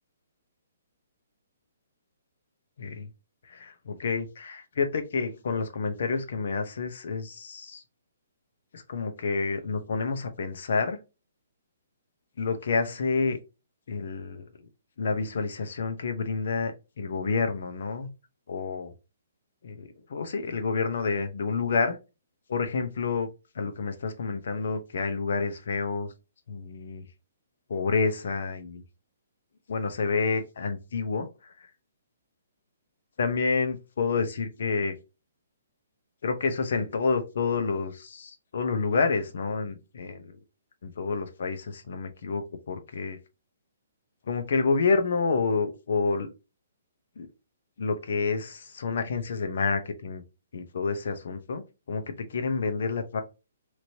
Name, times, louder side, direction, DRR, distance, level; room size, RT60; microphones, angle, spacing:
voice 1, 2.8-3.1 3.4-7.8 8.7-11.0 12.4-13.4 13.9-14.4 15.0-18.1 18.5-18.9 19.6-22.0 22.5-23.3 23.5-26.1 26.5-27.0 27.7-28.8 29.7-31.5 33.2-34.9 36.2-40.4 40.8-43.2 44.3-46.3 47.2-47.3 47.8-50.2 50.5-53.2, left 4 dB, 55° left, 0.6 m, -29 dB
3.0 x 2.6 x 2.9 m
hypercardioid pair, 175°, 0 cm